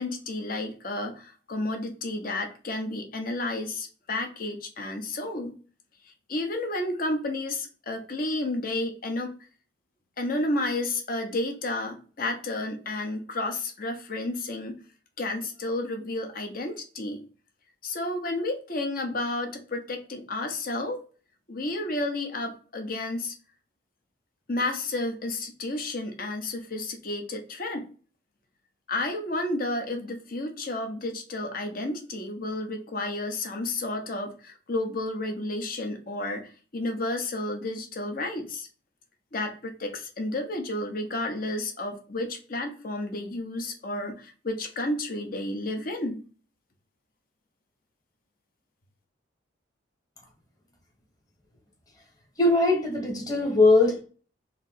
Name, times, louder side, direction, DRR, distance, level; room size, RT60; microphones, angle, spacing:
voice 1, 0.0-5.5 6.3-9.3 10.2-14.8 15.2-17.2 17.8-21.0 21.5-23.3 24.5-27.9 28.9-38.7 39.3-46.2, left 2 dB, 45° left, 4 dB, 0.8 m, -31 dB
voice 2, 52.4-54.0, left 2 dB, 20° left, 0 dB, 1.2 m, -20 dB
3.3 x 2.7 x 4.0 m, 0.38 s
head